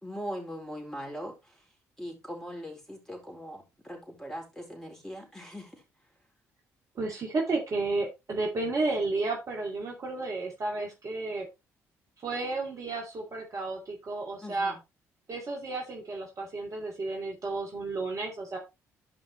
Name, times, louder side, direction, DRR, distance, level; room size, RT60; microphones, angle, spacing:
voice 1, 0.0-1.7 2.0-5.8 14.4-14.8, equal, 5° left, 1 dB, 4.3 m, -40 dB
voice 2, 7.0-11.5 12.2-14.7 15.3-18.6, right 3 dB, 40° right, -1 dB, 2.5 m, -32 dB
12.5 x 5.3 x 3.1 m, 0.23 s
figure-of-eight pair, 45°, 8 cm